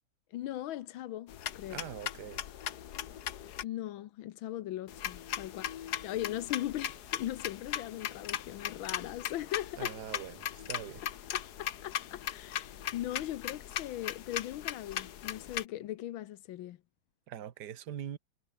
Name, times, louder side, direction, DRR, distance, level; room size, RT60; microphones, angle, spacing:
voice 1, 0.3-1.9 3.6-10.0 11.3-16.8, left 13 dB, 75° left, 1.5 m, -39 dB
sound 1, 1.3-3.6 4.9-15.6, left 10 dB, 55° left, 1.3 m, -39 dB
voice 2, 1.7-2.4 9.8-11.0 17.3-18.2, right 10 dB, 55° right, 1.7 m, -42 dB
omnidirectional pair, 2.3 m